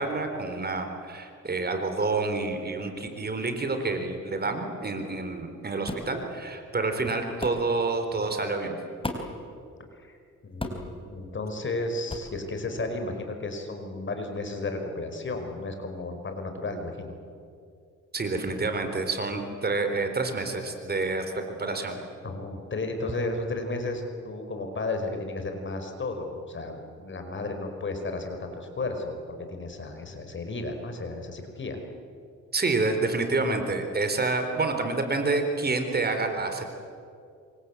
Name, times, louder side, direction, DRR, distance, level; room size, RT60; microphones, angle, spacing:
voice 1, 0.0-8.8 18.1-22.0 32.5-36.7, right 3 dB, 30° right, 6 dB, 4.1 m, -28 dB
sound 1, 5.9-6.1 7.4-7.6 9.0-9.4 10.6-10.9 12.1-12.3, left 2 dB, 20° left, 4.3 m, -34 dB
voice 2, 10.4-17.1 22.2-31.8, left 2 dB, 40° left, 5 dB, 5.1 m, -33 dB
27.0 x 25.0 x 8.5 m, 2.4 s
cardioid pair, 90°, 30 cm